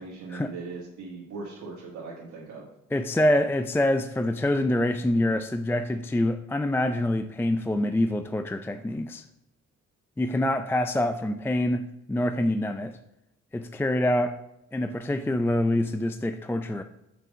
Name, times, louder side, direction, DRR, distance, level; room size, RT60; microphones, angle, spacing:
voice 1, 0.0-2.7, right 4 dB, 80° right, -5 dB, 1.5 m, -39 dB
voice 2, 2.9-9.2 10.2-13.0 13.5-14.4 14.7-16.8, left 1 dB, 10° left, 9 dB, 0.4 m, -26 dB
5.7 x 5.4 x 6.1 m, 0.86 s
cardioid pair, 70°, 29 cm